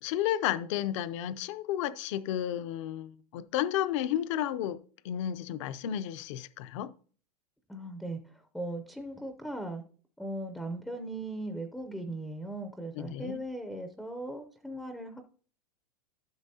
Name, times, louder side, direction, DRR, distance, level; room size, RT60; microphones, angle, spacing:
voice 1, 0.0-4.8 5.0-6.9 12.9-13.4, left 11 dB, 50° left, 0.5 m, -32 dB
voice 2, 7.7-8.2 8.5-9.8 10.2-15.2, right 1 dB, ahead, 0.4 m, -38 dB
12.0 x 6.0 x 2.7 m
supercardioid pair, 150°, 20 cm